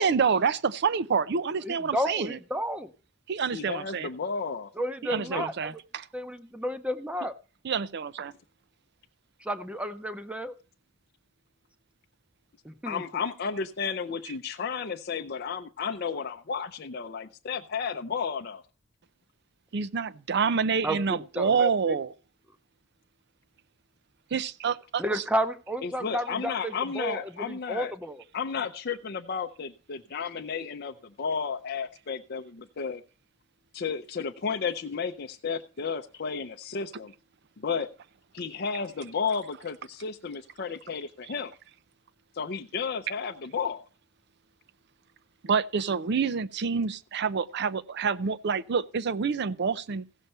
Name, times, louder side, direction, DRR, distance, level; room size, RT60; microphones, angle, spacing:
voice 1, 0.0-2.4 3.3-4.1 5.0-6.1 7.6-8.3 19.7-22.1 24.3-25.2 45.4-50.1, right 6 dB, 60° right, 0.5 m, -27 dB
voice 2, 1.6-2.9 4.8-5.7 6.1-7.3 9.4-10.5 12.6-13.0 20.8-22.0 25.0-28.2, equal, 5° right, 0.8 m, -32 dB
voice 3, 3.5-4.7 5.1-5.4 12.9-18.6 25.8-27.9 28.3-33.0 33.7-37.1 37.6-37.9 38.3-41.5 42.3-43.8, left 5 dB, 55° left, 0.6 m, -33 dB
15.5 x 6.7 x 4.3 m
head